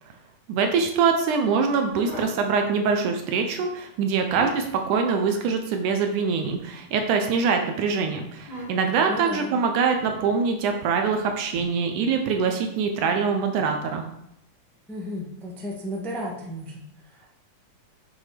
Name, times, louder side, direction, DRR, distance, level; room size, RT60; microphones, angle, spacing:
voice 1, 0.5-14.0, right 5 dB, 70° right, 4 dB, 2.1 m, -24 dB
sound 1, 1.9-2.4 3.9-4.8 6.5-7.4 8.4-9.0 9.9-10.3 11.5-11.6, equal, 20° right, 1.2 m, -40 dB
voice 2, 9.1-9.5 14.9-17.3, equal, ahead, -4 dB, 0.7 m, -34 dB
8.1 x 6.0 x 5.0 m, 0.79 s
omnidirectional pair, 4.0 m